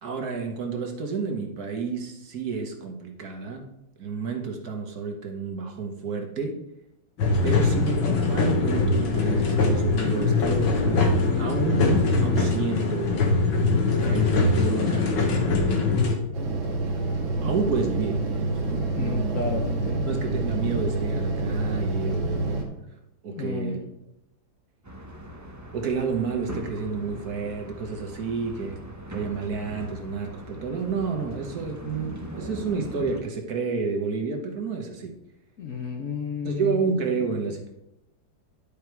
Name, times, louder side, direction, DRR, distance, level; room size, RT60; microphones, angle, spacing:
voice 1, 0.0-3.6 4.0-6.6 7.4-11.1 11.4-13.2 14.0-15.9 17.4-18.4 18.7-19.4 20.0-22.5 23.2-23.8 25.7-28.8 29.1-35.1 36.4-37.7, right 5 dB, 55° right, 3 dB, 1.5 m, -30 dB
sound 1, 7.2-16.2, left 3 dB, 90° left, 2.1 m, -22 dB
sound 2, 16.3-22.6, right 2 dB, 85° right, 2.7 m, -27 dB
voice 2, 18.9-20.1 22.1-22.2 23.3-23.8 35.6-36.9, left 4 dB, 60° left, 3 dB, 0.9 m, -32 dB
sound 3, 24.8-33.2, right 1 dB, 20° right, 0.5 m, -40 dB
11.0 x 5.3 x 4.6 m, 0.85 s
omnidirectional pair, 2.1 m